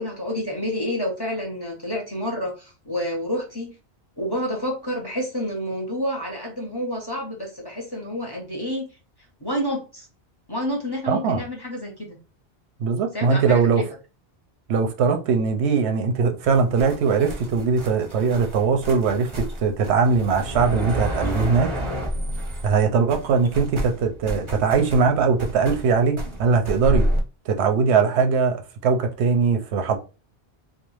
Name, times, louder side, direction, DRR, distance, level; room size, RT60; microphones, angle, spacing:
voice 1, 0.0-3.7 4.2-8.9 9.4-10.1 10.5-12.2 13.1-13.8, equal, 30° left, 0.6 m, -29 dB
voice 2, 11.1-11.4 12.8-13.8 14.7-21.7 22.6-27.1 27.5-30.0, right 5 dB, 90° right, 0.9 m, -21 dB
sound 1, 16.4-22.8 23.1-27.2, equal, 35° right, 0.5 m, -29 dB
2.4 x 2.2 x 3.0 m
omnidirectional pair, 1.1 m